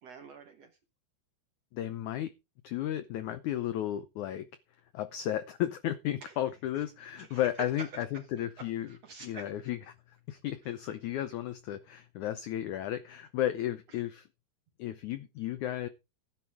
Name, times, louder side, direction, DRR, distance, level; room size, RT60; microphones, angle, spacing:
voice 1, 0.0-0.7 6.2-6.4 7.2-8.2 8.6-9.5, right 4 dB, 60° right, 1.8 m, -46 dB
voice 2, 1.7-2.3 2.6-4.5 4.9-8.9 9.2-9.8 10.1-14.3 14.8-15.9, left 12 dB, 80° left, 1.7 m, -34 dB
15.5 x 10.5 x 3.6 m
omnidirectional pair, 4.5 m